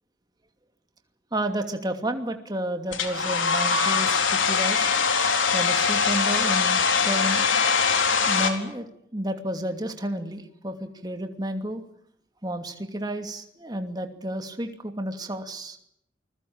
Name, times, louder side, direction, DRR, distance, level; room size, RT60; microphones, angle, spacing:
voice 1, 1.3-4.9 5.5-7.5 8.3-8.9 9.1-11.8 12.4-15.8, right 1 dB, 20° right, 6 dB, 2.7 m, -31 dB
Domestic sounds home sounds, 2.9-8.5, left 5 dB, 75° left, 4.2 m, -22 dB
29.0 x 21.5 x 8.8 m, 0.72 s
head